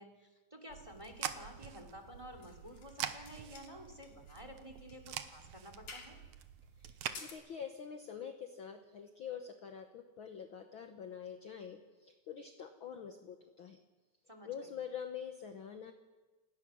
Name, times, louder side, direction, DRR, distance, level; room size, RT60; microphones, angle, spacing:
voice 1, 0.0-6.2 14.3-14.7, equal, 10° right, 6 dB, 2.5 m, -52 dB
sound 1, 0.7-7.2, right 10 dB, 80° right, 2.4 m, -45 dB
sound 2, 1.9-2.9 3.2-4.4 4.8-5.0 5.3-5.4 5.9-6.2 7.0-7.3, left 4 dB, 90° left, 4.1 m, -52 dB
voice 2, 6.8-13.8 14.4-15.9, left 7 dB, 55° left, 6 dB, 1.5 m, -46 dB
29.0 x 17.5 x 6.3 m, 1.2 s
omnidirectional pair, 3.3 m